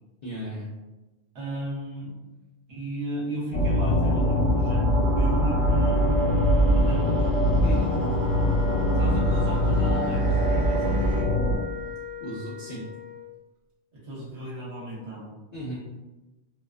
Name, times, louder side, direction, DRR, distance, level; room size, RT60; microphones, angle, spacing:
voice 1, 0.2-0.7 7.6-7.9 12.2-12.9 15.5-15.8, right 1 dB, 50° left, -8 dB, 0.5 m, -34 dB
voice 2, 1.3-2.1 2.7-4.9 5.1-6.1 6.7-7.3 8.9-11.0 13.9-15.3, right 1 dB, 65° right, -4 dB, 1.0 m, -34 dB
sound 1, 3.5-11.6, equal, 70° left, 0.8 m, -22 dB
sound 2, 3.9-11.2, right 2 dB, ahead, 0.9 m, -38 dB
Wind instrument woodwind instrument, 7.7-13.3, left 8 dB, 40° right, 0.4 m, -39 dB
2.3 x 2.3 x 2.4 m, 1.1 s
omnidirectional pair, 1.2 m